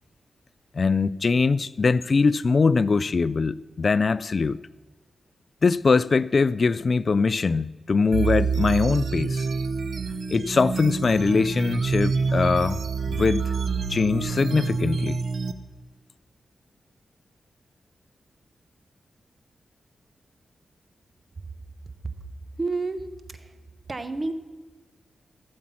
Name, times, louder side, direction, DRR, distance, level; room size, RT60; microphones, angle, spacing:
voice 1, 0.7-4.6 5.6-9.5 10.3-12.8 13.1-13.5 13.9-15.2, left 4 dB, 55° left, 0.3 m, -22 dB
sound 1, 8.1-15.5, right 5 dB, 70° right, 0.7 m, -27 dB
voice 2, 22.6-23.6 23.9-24.3, right 3 dB, 35° right, 1.2 m, -30 dB
16.5 x 7.5 x 5.8 m
cardioid pair, 65°, 0 cm